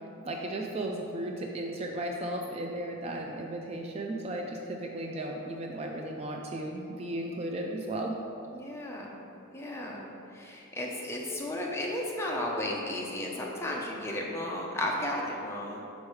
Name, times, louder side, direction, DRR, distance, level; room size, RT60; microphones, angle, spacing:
voice 1, 0.3-8.1, right 1 dB, 30° right, 1 dB, 0.3 m, -35 dB
voice 2, 8.5-9.2 9.5-15.9, left 1 dB, 10° left, -2 dB, 0.6 m, -34 dB
5.3 x 4.7 x 4.8 m, 2.7 s
head